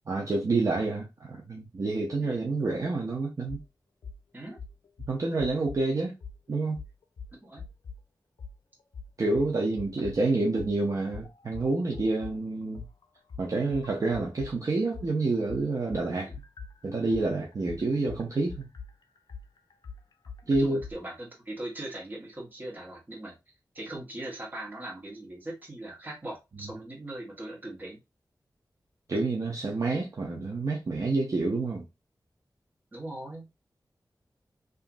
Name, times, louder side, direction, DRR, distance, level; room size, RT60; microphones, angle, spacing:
voice 1, 0.1-3.6 5.1-6.1 6.5-6.8 9.2-12.8 13.4-16.3 16.8-18.7 20.5-20.8 26.6-26.7 29.1-31.9, right 3 dB, 50° right, 0.5 m, -28 dB
voice 2, 2.2-2.6 4.3-4.6 7.4-7.6 10.2-10.4 16.1-16.3 20.4-23.3 23.7-28.0 32.9-33.5, right 1 dB, 25° right, 1.1 m, -40 dB
sound 1, 3.5-3.7 4.0-4.2 4.6-5.8 6.2-6.4 6.8-8.0 8.4-8.6 8.9-10.2 10.6-14.6 14.9-20.9, left 5 dB, 75° left, 0.4 m, -43 dB
2.9 x 2.4 x 2.4 m
wide cardioid pair, 110°, 7 cm